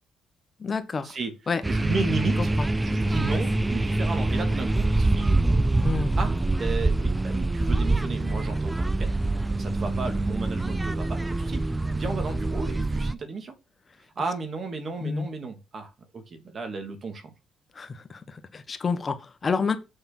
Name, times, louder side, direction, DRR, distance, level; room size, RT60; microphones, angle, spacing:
voice 1, 0.6-1.1 1.5-1.6 2.4-2.7 5.8-6.2 15.0-15.3 17.7-19.8, left 5 dB, 35° left, 1.2 m, -29 dB
sound 1, 1.6-13.1, right 2 dB, 15° right, 0.5 m, -25 dB
voice 2, 1.7-2.5 2.8-5.4 6.2-9.1 9.6-13.5 14.2-17.3, right 4 dB, 45° right, 2.7 m, -34 dB
7.1 x 5.3 x 6.1 m
cardioid pair, 90°, 0 cm